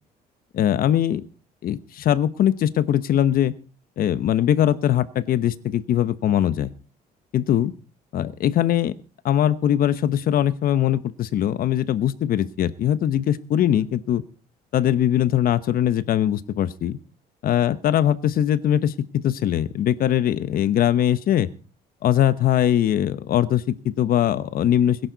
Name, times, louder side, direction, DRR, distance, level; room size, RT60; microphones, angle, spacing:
voice 1, 0.5-1.2 1.6-3.5 4.0-6.7 7.3-7.7 8.1-8.9 9.2-14.2 14.7-17.0 17.4-18.9 19.2-21.5 22.0-25.0, left 11 dB, 60° left, 14 dB, 1.1 m, -21 dB
21.5 x 11.0 x 4.1 m, 0.38 s
cardioid pair, 110°, 17 cm